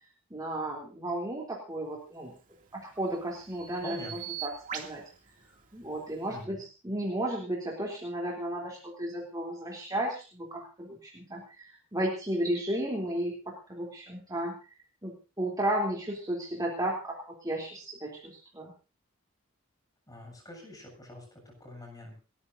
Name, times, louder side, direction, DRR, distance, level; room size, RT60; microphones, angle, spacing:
voice 1, 0.3-2.3 2.7-5.1 5.7-14.6 15.0-18.7, right 1 dB, 20° right, -2 dB, 3.6 m, -34 dB
Bird vocalization bird call bird song, 2.2-6.4, right 9 dB, 40° right, 2.7 m, -44 dB
voice 2, 3.8-4.2 6.1-6.6 20.1-22.2, left 1 dB, 20° left, 1 dB, 8.0 m, -45 dB
30.0 x 13.5 x 2.8 m, 0.35 s
head